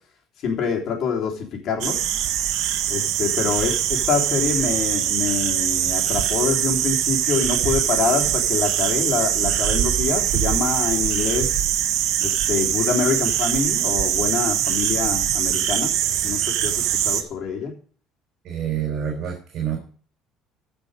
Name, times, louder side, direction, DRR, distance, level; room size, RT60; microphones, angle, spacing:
voice 1, 0.4-2.0 2.9-11.6 12.2-15.9 16.2-17.7, left 5 dB, 50° left, 1 dB, 3.4 m, -25 dB
sound 1, 1.8-17.2, right 11 dB, 70° right, 1.4 m, -22 dB
voice 2, 18.4-19.8, right 9 dB, 50° right, 0 dB, 4.7 m, -27 dB
15.5 x 6.1 x 5.0 m, 0.42 s
cardioid pair, 155°, 0 cm